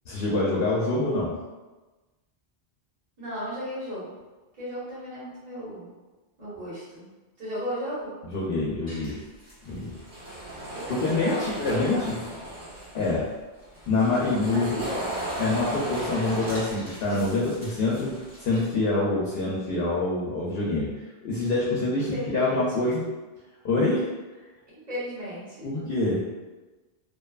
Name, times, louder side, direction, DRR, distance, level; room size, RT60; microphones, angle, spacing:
voice 1, 0.1-1.4 8.3-9.2 9.6-9.9 10.9-12.2 12.9-13.3 13.9-14.8 15.4-18.1 18.4-20.9 21.2-23.0 23.6-24.1 25.6-26.2, left 2 dB, 70° left, -5 dB, 0.7 m, -25 dB
voice 2, 3.2-4.1 4.6-5.9 6.4-7.1 7.4-8.1 10.7-12.2 14.5-15.4 22.0-22.8 24.7-25.7, equal, 45° right, -9 dB, 1.1 m, -35 dB
sound 1, 8.9-13.1 13.6-18.6, right 1 dB, 30° right, 0.9 m, -36 dB
2.7 x 2.2 x 2.3 m, 1.2 s
omnidirectional pair, 1.1 m